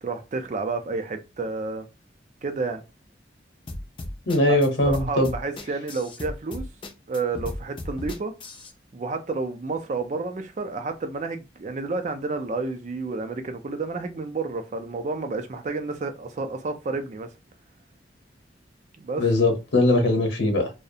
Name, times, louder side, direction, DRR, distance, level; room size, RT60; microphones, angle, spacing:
voice 1, 0.0-1.9 2.4-2.8 4.5-4.6 4.8-6.6 7.1-8.3 8.9-17.3 19.0-19.2, right 3 dB, 40° right, 0.4 m, -30 dB
sound 1, 3.7-8.7, left 1 dB, 30° left, 0.4 m, -35 dB
voice 2, 4.3-5.3 19.2-20.7, left 2 dB, 80° left, 0.9 m, -21 dB
2.3 x 2.0 x 2.7 m
head